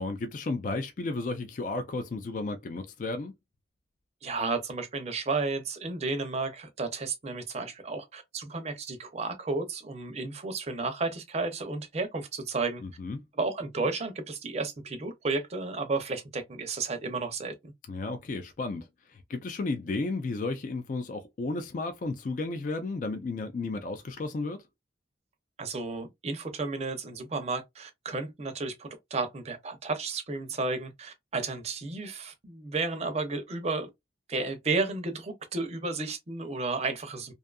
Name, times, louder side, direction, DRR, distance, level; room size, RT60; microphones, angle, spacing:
voice 1, 0.0-3.3 12.8-13.2 17.9-24.6, left 3 dB, 45° left, 0.3 m, -33 dB
voice 2, 4.2-12.8 13.4-17.7 25.6-33.9 34.3-37.3, right 3 dB, 35° right, 0.5 m, -32 dB
2.6 x 2.4 x 2.3 m
head